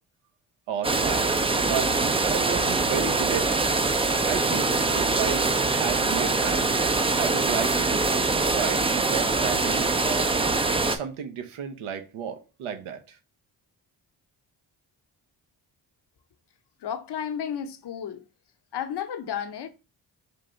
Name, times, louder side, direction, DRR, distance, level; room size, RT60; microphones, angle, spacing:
voice 1, 0.7-6.7 7.1-7.9 8.4-10.4 10.8-13.2, right 8 dB, 85° right, 0.8 m, -33 dB
sound 1, 0.8-11.0, right 3 dB, 15° right, 0.3 m, -24 dB
voice 2, 16.8-18.2 18.7-19.7, left 8 dB, 55° left, 0.7 m, -32 dB
3.5 x 2.6 x 4.3 m
supercardioid pair, 55°, 49 cm